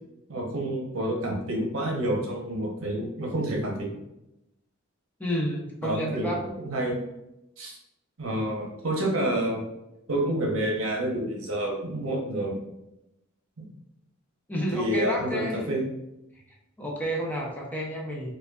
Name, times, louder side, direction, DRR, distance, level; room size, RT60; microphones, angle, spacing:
voice 1, 0.3-3.9 5.8-7.0 7.6-7.8 8.2-9.6 10.1-12.6 13.6-13.7 14.7-15.9, right 1 dB, 70° right, 0 dB, 0.8 m, -28 dB
voice 2, 5.2-6.4 14.5-15.6 16.8-18.3, equal, 10° left, -2 dB, 0.5 m, -30 dB
4.9 x 2.2 x 2.3 m, 0.90 s
head